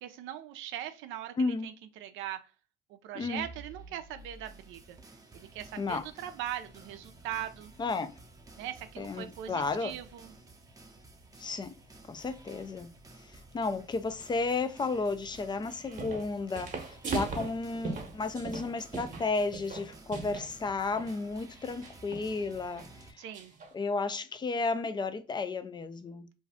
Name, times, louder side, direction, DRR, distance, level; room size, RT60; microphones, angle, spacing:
voice 1, 0.0-2.5 2.9-5.0 5.3-7.7 8.6-10.3 23.2-23.5, right 11 dB, 70° right, 0.5 m, -40 dB
voice 2, 1.4-1.7 3.1-3.5 5.8-6.1 7.8-8.1 9.0-9.9 11.4-11.7 12.1-12.9 13.2-23.2 23.7-26.3, left 3 dB, 20° left, 0.4 m, -33 dB
sound 1, 3.2-23.1, right 2 dB, 15° right, 0.6 m, -53 dB
sound 2, 15.7-16.3 16.5-20.5 20.9-21.1 21.8-22.3 22.8-22.9 23.3-23.7, right 4 dB, 40° right, 0.9 m, -38 dB
2.6 x 2.3 x 3.3 m
supercardioid pair, 85°, 20 cm